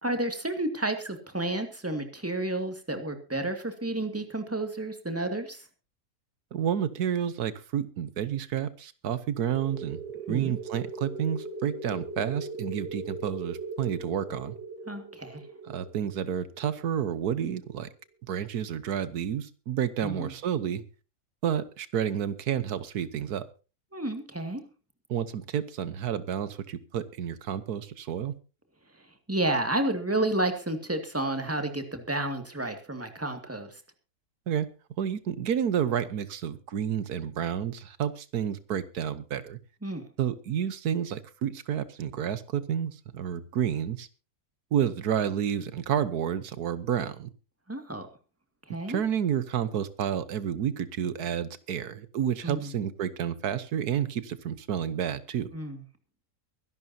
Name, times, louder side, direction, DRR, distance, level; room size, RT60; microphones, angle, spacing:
voice 1, 0.0-5.6 10.3-10.6 14.9-15.4 20.0-20.3 23.9-24.6 29.3-33.7 39.8-40.0 47.7-48.1 48.7-49.0 52.4-52.7 55.5-55.8, right 1 dB, 10° right, 6 dB, 2.2 m, -31 dB
voice 2, 6.5-10.0 10.3-14.5 15.6-17.9 18.3-20.8 21.4-23.5 25.1-28.3 34.5-34.7 35.0-39.6 40.2-44.1 44.7-47.3 48.9-55.5, right 9 dB, 85° right, 14 dB, 1.6 m, -30 dB
sound 1, 9.5-17.9, right 3 dB, 40° right, 5.9 m, -40 dB
23.5 x 11.5 x 2.8 m, 0.32 s
omnidirectional pair, 1.6 m